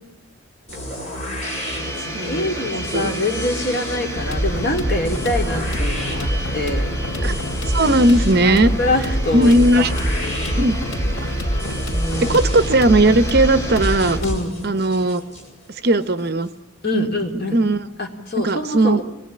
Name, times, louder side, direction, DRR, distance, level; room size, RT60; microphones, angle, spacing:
sound 1, 0.7-16.5, equal, 30° left, 7.1 m, -32 dB
voice 1, 1.4-6.9 8.4-10.6 11.9-12.6 14.2-14.5 16.8-17.6 18.0-19.0, left 2 dB, 50° left, 2 dB, 3.3 m, -25 dB
Domestic sounds home sounds, 1.4-14.2, right 1 dB, 15° left, 3.2 m, -34 dB
voice 2, 2.1-2.6 2.9-3.1 6.4-6.5 7.2-7.3 7.7-8.7 9.3-9.9 10.6-10.8 11.2-11.3 12.2-14.2 14.6-15.2 15.7-16.5 16.9-17.1 17.5-17.9 18.4-19.0, right 1 dB, 50° right, 12 dB, 0.9 m, -17 dB
sound 2, 4.1-14.4, equal, 90° left, 3.0 m, -25 dB
27.0 x 20.5 x 8.8 m, 1.0 s
head